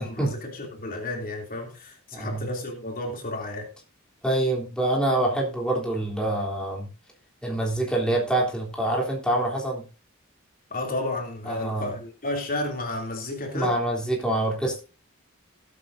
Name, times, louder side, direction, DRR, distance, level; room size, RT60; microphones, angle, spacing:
voice 1, 0.0-3.7 10.7-13.8, left 2 dB, 45° left, 2.9 m, -32 dB
voice 2, 2.1-2.5 4.2-6.9 7.4-9.8 11.5-11.9 13.5-14.8, right 1 dB, 5° left, 3.3 m, -26 dB
18.5 x 8.6 x 2.7 m
head